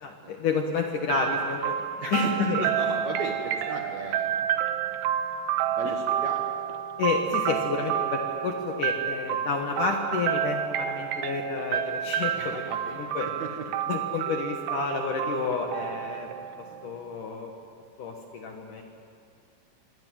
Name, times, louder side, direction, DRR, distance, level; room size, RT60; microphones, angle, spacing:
voice 1, 0.0-1.8 2.1-2.7 5.8-5.9 7.0-12.5 13.0-13.3 13.9-16.3 16.6-17.5 18.0-18.8, left 5 dB, 60° left, 2 dB, 2.3 m, -30 dB
sound 1, 1.1-16.9, right 10 dB, 75° right, 2.9 m, -30 dB
voice 2, 2.0-5.0 5.7-6.5 12.3-13.0 13.4-13.5 16.6-16.8, right 3 dB, 60° right, 1 dB, 2.0 m, -37 dB
25.0 x 17.5 x 9.3 m, 2.5 s
omnidirectional pair, 5.3 m